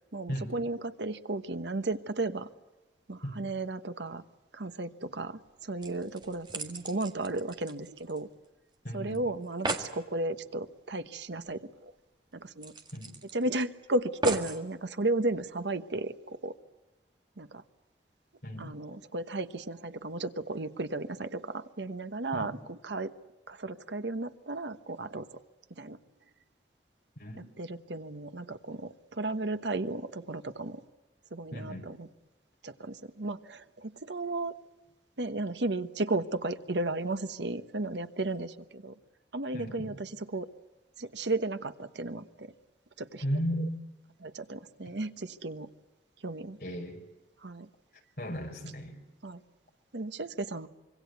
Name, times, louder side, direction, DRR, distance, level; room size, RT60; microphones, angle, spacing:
voice 1, 0.0-2.5 3.1-4.2 4.5-8.3 8.9-11.9 12.3-12.7 13.3-16.5 17.4-17.6 18.6-23.1 23.5-25.4 25.8-26.0 27.4-30.8 31.3-32.1 32.6-34.5 35.2-38.9 39.3-40.5 41.0-42.5 43.0-43.2 43.6-43.7 44.2-45.7 46.2-46.6 47.4-47.7 49.2-49.4 49.9-50.7, right 2 dB, 80° right, 11 dB, 1.2 m, -34 dB
sound 1, 5.5-5.6 5.8-8.5 8.7-8.8 9.1-9.2 9.4-10.0 11.5-11.6 11.9-12.0 12.6-13.6 14.2-14.6 15.4-15.5, right 3 dB, 25° right, 1.8 m, -37 dB
voice 2, 8.8-9.2 12.9-13.1 18.4-18.7 22.3-22.5 27.2-27.4 31.5-31.8 39.5-40.0 43.2-43.8 46.6-47.0 48.2-48.9, equal, 55° left, 2 dB, 5.6 m, -35 dB
25.5 x 24.0 x 8.2 m, 1.1 s
head